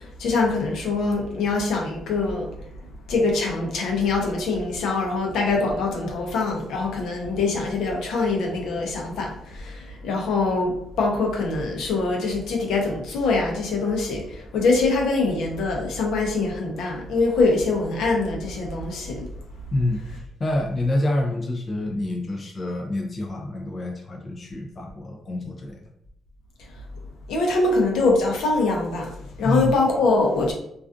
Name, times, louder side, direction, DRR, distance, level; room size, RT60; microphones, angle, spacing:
voice 1, 0.2-2.5 3.1-9.8 10.0-14.2 14.5-19.3 27.3-29.1 29.4-30.5, left 3 dB, 80° left, 0.6 m, -23 dB
voice 2, 19.7-25.8 29.4-29.7, left 1 dB, 30° left, 0.3 m, -27 dB
2.4 x 2.3 x 2.4 m
cardioid pair, 150°, 0 cm